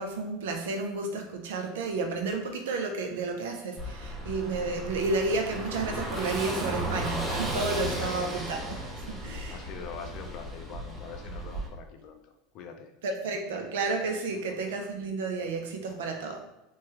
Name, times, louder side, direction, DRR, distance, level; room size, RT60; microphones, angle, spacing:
voice 1, 0.0-8.8 9.1-9.6 13.0-16.4, right 3 dB, 85° right, 4 dB, 0.5 m, -31 dB
Car passing by / Engine, 3.8-11.7, equal, 10° right, 0.9 m, -35 dB
voice 2, 8.0-8.3 9.1-9.2 9.5-12.9 14.5-14.6 15.9-16.3, left 5 dB, 55° left, 6 dB, 0.4 m, -44 dB
3.3 x 2.3 x 3.1 m, 0.90 s
supercardioid pair, 110°, 0 cm